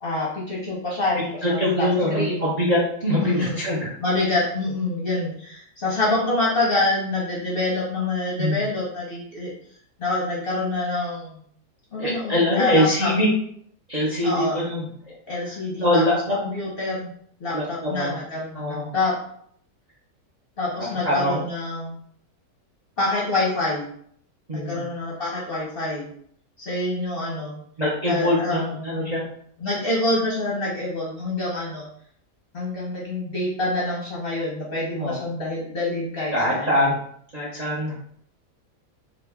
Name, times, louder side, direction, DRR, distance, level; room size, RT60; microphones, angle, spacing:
voice 1, 0.0-2.4 3.2-3.6 4.0-9.5 10.0-11.4 11.9-13.1 14.2-14.6 15.3-16.0 16.4-17.1 17.4-19.2 20.6-21.9 23.0-23.8 24.5-26.1 26.6-27.6 28.1-28.9 29.6-31.9 32.5-36.7, left 2 dB, 50° left, -5 dB, 0.8 m, -26 dB
voice 2, 1.4-3.9 8.4-8.6 12.0-13.3 13.9-15.1 15.8-16.4 17.5-18.1 18.5-18.9 21.0-21.4 24.5-24.8 27.8-29.2 34.9-35.2 36.3-37.0 37.3-37.9, left 1 dB, 40° right, -6 dB, 0.6 m, -23 dB
3.0 x 2.4 x 3.4 m, 0.63 s
omnidirectional pair, 1.7 m